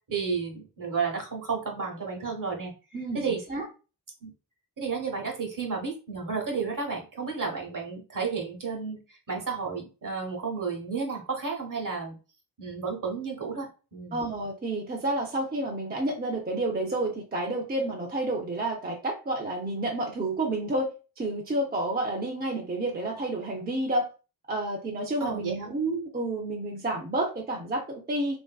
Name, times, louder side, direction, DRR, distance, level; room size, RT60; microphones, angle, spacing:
voice 1, 0.1-2.7 3.1-3.4 4.2-4.3 4.8-12.2 12.6-14.2 25.2-25.7, right 5 dB, 55° right, 1 dB, 0.9 m, -32 dB
voice 2, 2.9-3.7 14.1-20.9 21.2-24.1 24.5-28.4, right 2 dB, 25° right, 1 dB, 0.4 m, -30 dB
3.1 x 2.5 x 2.2 m, 0.33 s
wide cardioid pair, 120°, 39 cm